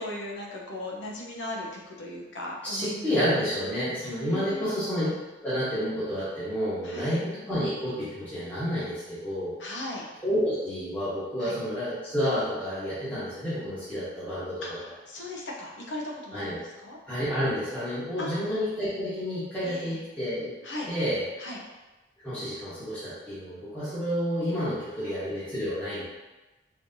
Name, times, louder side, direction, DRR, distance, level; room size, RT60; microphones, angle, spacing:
voice 1, 0.0-3.1 4.0-4.8 6.8-7.2 9.6-10.0 11.4-11.6 14.6-17.0 18.2-18.4 19.6-20.0 20.6-20.9 21.4-21.6 25.0-25.3, left 1 dB, 75° left, -2 dB, 0.8 m, -38 dB
voice 2, 2.7-5.1 5.4-9.6 10.2-14.8 16.3-16.6 17.1-20.5 20.9-21.2 22.2-26.0, equal, 10° left, -14 dB, 1.2 m, -30 dB
4.1 x 3.0 x 2.6 m, 1.1 s
head